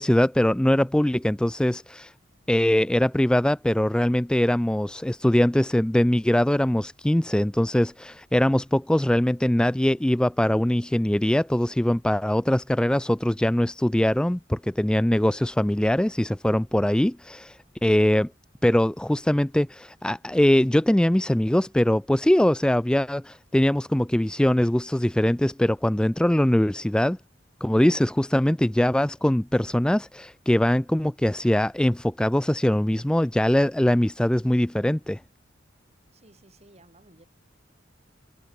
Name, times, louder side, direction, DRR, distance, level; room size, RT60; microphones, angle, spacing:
voice 1, 0.0-2.1 2.5-18.3 18.6-27.2 27.6-35.2, left 1 dB, 5° left, 0.3 m, -22 dB
voice 2, 36.1-37.3, right 2 dB, 35° right, 4.6 m, -55 dB
head